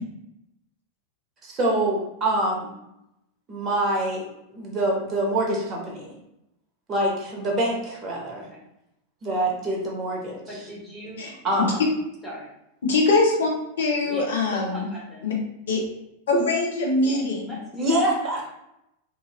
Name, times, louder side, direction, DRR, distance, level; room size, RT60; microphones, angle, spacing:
voice 1, 1.4-2.7 3.5-4.2 4.5-6.1 6.9-8.5 9.2-10.4 11.4-11.8 17.7-18.5, right 1 dB, 25° right, -2 dB, 0.8 m, -25 dB
voice 2, 10.5-11.2 12.2-12.5 14.0-15.2 17.0-18.5, equal, 5° left, -7 dB, 1.0 m, -40 dB
voice 3, 12.8-13.5 13.8-14.9 15.2-15.3 15.7-15.8 16.3-17.6, left 3 dB, 65° left, -1 dB, 0.7 m, -22 dB
2.7 x 2.6 x 2.9 m, 0.84 s
figure-of-eight pair, 90°, 0 cm